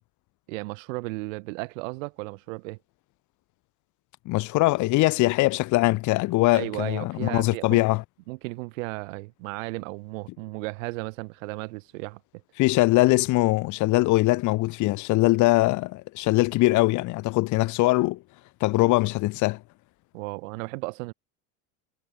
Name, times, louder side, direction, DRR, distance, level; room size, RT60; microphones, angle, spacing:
voice 1, 0.5-2.8 6.5-7.8 8.3-12.2 20.1-21.1, right 25 dB, 80° right, 6.7 m, -35 dB
voice 2, 4.3-8.0 12.6-18.2 18.6-19.6, left 20 dB, 50° left, 3.4 m, -22 dB
cardioid pair, 160°, 38 cm